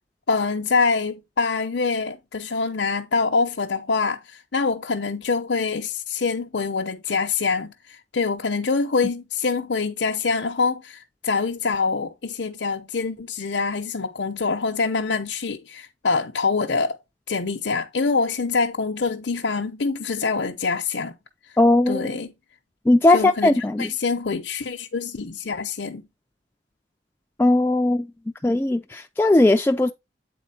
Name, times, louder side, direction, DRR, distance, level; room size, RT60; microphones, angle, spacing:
voice 1, 0.3-17.0 17.3-21.1 21.9-22.3 23.1-26.0, left 4 dB, 75° left, 0.7 m, -25 dB
voice 2, 21.6-22.0 22.9-23.9 27.4-28.1 28.4-29.9, left 2 dB, 10° left, 0.3 m, -18 dB
8.5 x 4.1 x 4.2 m
head